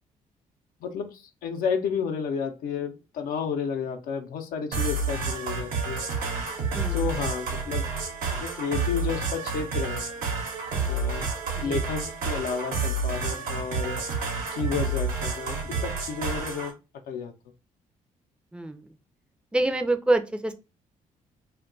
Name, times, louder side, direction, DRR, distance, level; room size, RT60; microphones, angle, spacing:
voice 1, 0.8-6.0 6.9-7.9 8.3-10.0 10.8-11.3 11.6-14.0 14.5-16.8 17.1-17.3, left 6 dB, 85° left, 5 dB, 0.6 m, -31 dB
sound 1, 4.7-16.7, right 3 dB, 85° right, 0.9 m, -29 dB
voice 2, 18.5-18.8 19.5-20.5, right 2 dB, 5° right, 7 dB, 0.4 m, -26 dB
2.3 x 2.2 x 3.7 m, 0.29 s
cardioid pair, 85°, 14 cm